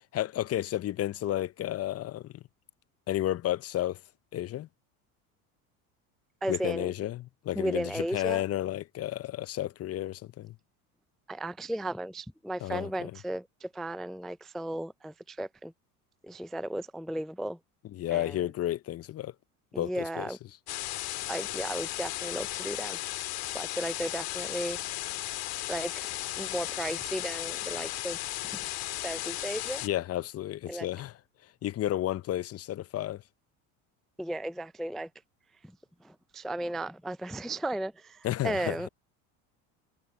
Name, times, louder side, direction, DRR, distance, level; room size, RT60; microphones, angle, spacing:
voice 1, 0.1-2.4 3.1-4.0 4.3-4.7 6.5-10.5 12.6-13.1 17.9-19.3 19.8-20.3 29.8-31.2 31.6-33.2 38.2-38.9, left 13 dB, 35° left, 0.7 m, -32 dB
voice 2, 6.4-6.9 7.6-8.4 11.3-15.7 16.2-17.6 18.1-18.5 19.7-20.4 21.3-23.0 23.5-24.8 25.7-26.1 26.4-28.2 28.4-28.6 29.0-29.8 30.7-30.9 34.2-35.1 36.0-38.9, right 1 dB, ahead, 0.4 m, -35 dB
sound 1, 20.7-29.9, left 17 dB, 55° left, 2.1 m, -35 dB
hypercardioid pair, 90°, 44 cm